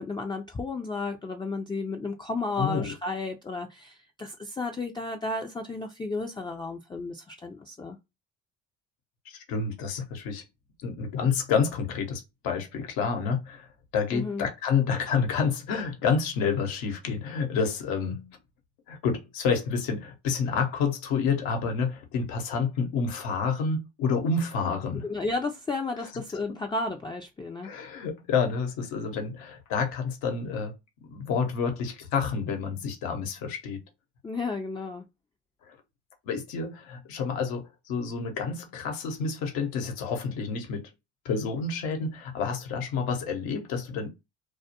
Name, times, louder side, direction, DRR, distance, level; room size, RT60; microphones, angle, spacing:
voice 1, 0.0-8.0 14.1-14.5 24.9-27.7 34.2-35.0, left 3 dB, 15° left, 0.3 m, -33 dB
voice 2, 2.6-2.9 9.3-10.4 10.8-13.7 13.9-18.4 18.9-25.1 27.6-30.7 31.1-33.8 35.7-35.8 36.2-40.9 41.2-44.1, left 5 dB, 80° left, 0.9 m, -29 dB
2.2 x 2.1 x 2.8 m
supercardioid pair, 65°, 35 cm